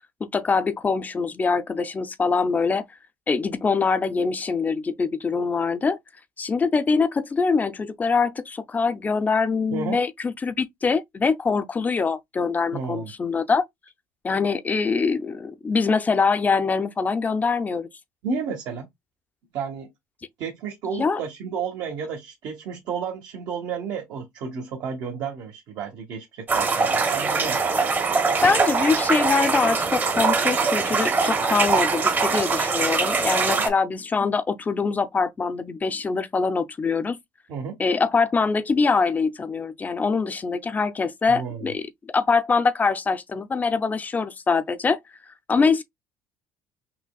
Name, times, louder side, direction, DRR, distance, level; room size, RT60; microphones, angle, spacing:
voice 1, 0.2-2.8 3.3-6.0 6.4-13.6 14.2-17.9 21.0-21.2 28.4-37.2 37.8-41.8 42.1-45.0 45.5-45.8, left 4 dB, 25° left, 0.5 m, -23 dB
voice 2, 9.7-10.0 12.7-13.1 18.2-18.9 19.5-19.9 20.4-27.6 33.5-33.6 37.5-37.8 41.3-41.7, right 6 dB, 65° right, 1.1 m, -32 dB
sound 1, 26.5-33.7, right 4 dB, 25° right, 0.9 m, -22 dB
5.9 x 2.2 x 2.3 m
cardioid pair, 105°, 7 cm